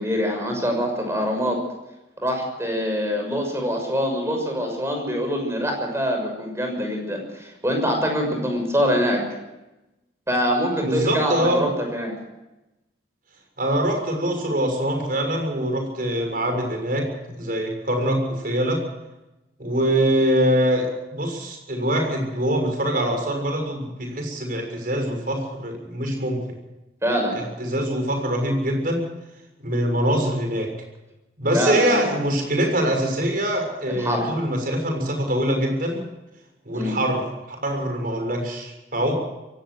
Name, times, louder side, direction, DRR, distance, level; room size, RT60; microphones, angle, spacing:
voice 1, 0.0-1.6 2.2-9.2 10.3-12.1 27.0-27.3 31.5-32.1 33.9-34.3 36.7-36.9, equal, 15° right, 3 dB, 6.3 m, -24 dB
voice 2, 10.8-11.6 13.6-18.8 19.6-26.4 27.3-29.0 29.6-30.7 31.4-36.0 36.6-39.1, right 1 dB, 50° right, 3 dB, 6.7 m, -24 dB
23.5 x 17.5 x 6.4 m, 0.98 s
head